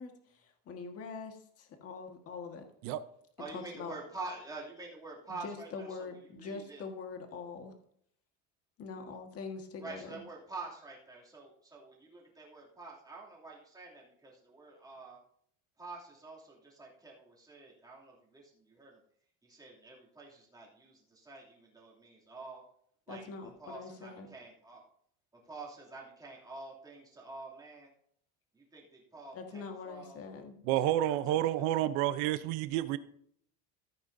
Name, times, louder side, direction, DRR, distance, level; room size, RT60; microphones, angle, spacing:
voice 1, 0.0-2.7 3.5-3.9 5.3-7.7 8.8-10.2 23.1-24.3 29.3-30.5, left 4 dB, 35° left, 4 dB, 1.6 m, -44 dB
voice 2, 3.4-6.8 9.8-15.2 15.8-19.0 19.4-22.6 23.1-24.9 25.4-27.9 28.5-30.2 31.0-31.4, right 3 dB, 10° right, -4 dB, 2.7 m, -47 dB
voice 3, 30.7-33.0, right 13 dB, 85° right, 13 dB, 0.8 m, -29 dB
15.0 x 8.6 x 2.7 m, 0.66 s
cardioid pair, 165°, 41 cm